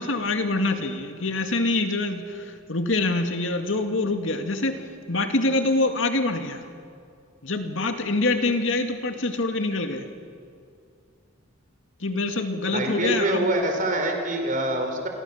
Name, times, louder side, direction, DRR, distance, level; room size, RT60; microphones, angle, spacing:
voice 1, 0.0-4.8 5.1-6.6 7.4-10.1 12.0-13.5, left 2 dB, 70° left, 5 dB, 2.3 m, -25 dB
voice 2, 12.7-15.1, right 1 dB, 45° right, 3 dB, 4.4 m, -25 dB
29.5 x 23.0 x 7.3 m, 2.3 s
head